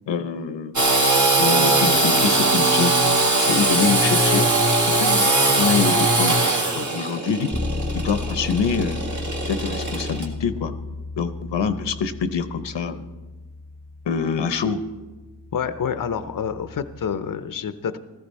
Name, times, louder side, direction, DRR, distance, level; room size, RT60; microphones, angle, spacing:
voice 1, 0.1-0.8 1.4-3.0 3.5-4.5 4.9-5.3 5.6-6.4 6.7-7.5 7.9-9.1 9.4-10.7 11.2-13.0 14.1-14.8, left 6 dB, 85° left, 10 dB, 0.9 m, -25 dB
Engine / Sawing, 0.7-10.2, right 2 dB, 45° right, 1.9 m, -20 dB
Bass guitar, 7.5-17.3, left 3 dB, 5° left, 0.6 m, -34 dB
voice 2, 15.5-18.0, left 7 dB, 50° left, 11 dB, 0.7 m, -28 dB
15.0 x 14.0 x 4.2 m, 1.2 s
wide cardioid pair, 90°, 42 cm